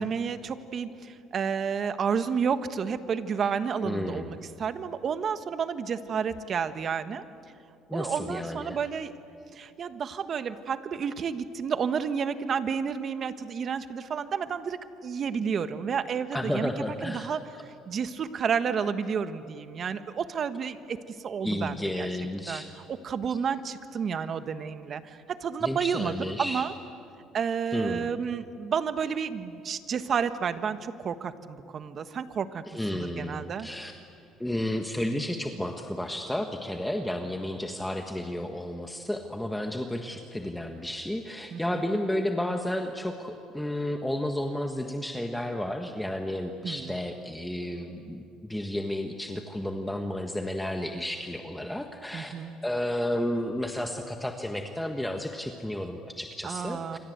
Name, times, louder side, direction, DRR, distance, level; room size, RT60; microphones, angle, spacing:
voice 1, 0.0-7.2 7.9-9.1 9.5-16.7 17.0-17.4 17.9-22.1 22.5-22.6 22.9-26.7 27.3-32.6 32.9-33.7 41.5-41.8 46.6-47.0 52.1-52.5 56.4-57.0, right 6 dB, 45° right, 11 dB, 1.4 m, -31 dB
voice 2, 3.8-4.3 7.9-8.8 16.3-17.3 21.4-22.7 25.6-26.7 27.7-28.1 32.7-33.9 34.4-52.3 52.6-57.0, left 1 dB, 5° left, 4 dB, 1.6 m, -32 dB
28.0 x 25.5 x 8.0 m, 2.6 s
cardioid pair, 105°, 0 cm